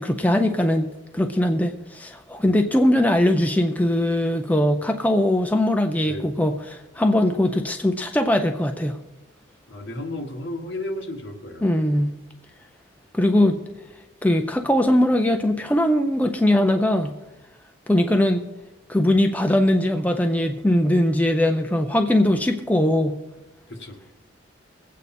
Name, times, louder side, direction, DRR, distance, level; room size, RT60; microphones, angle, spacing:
voice 1, 0.0-9.0 11.6-12.1 13.1-13.6 14.2-17.1 17.9-18.4 18.9-23.2, left 1 dB, 10° left, 5 dB, 0.5 m, -20 dB
voice 2, 9.7-11.9 23.7-24.0, left 1 dB, 65° left, 2 dB, 1.7 m, -33 dB
21.0 x 8.3 x 4.3 m, 1.1 s
head